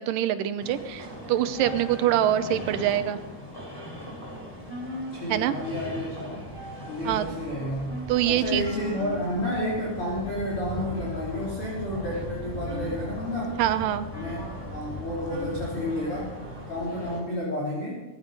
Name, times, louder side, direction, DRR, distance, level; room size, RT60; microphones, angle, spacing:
voice 1, 0.0-3.2 5.3-5.5 7.0-7.3 8.1-8.7 13.6-14.1, right 11 dB, 75° right, 11 dB, 2.1 m, -24 dB
sound 1, 0.6-17.2, left 1 dB, 5° left, 3.4 m, -38 dB
voice 2, 5.1-6.4 6.9-8.0 8.2-13.6 14.1-14.4 14.7-16.3 16.7-18.0, left 1 dB, 35° left, -6 dB, 4.1 m, -31 dB
18.0 x 15.0 x 5.2 m, 1.1 s
omnidirectional pair, 4.5 m